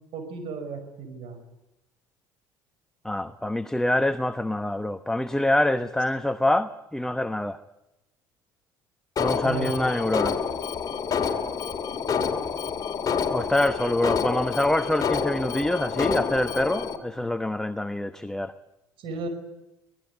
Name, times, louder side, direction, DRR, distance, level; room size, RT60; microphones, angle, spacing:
voice 1, 0.1-1.4 9.4-9.7 19.0-19.3, right 5 dB, 55° right, 8 dB, 5.8 m, -34 dB
voice 2, 3.0-7.6 9.2-10.4 13.3-18.5, left 1 dB, 5° left, 10 dB, 1.0 m, -25 dB
Alarm, 9.2-17.0, left 6 dB, 35° left, 2.8 m, -28 dB
24.5 x 17.5 x 9.5 m, 0.95 s
hypercardioid pair, 65°, 11 cm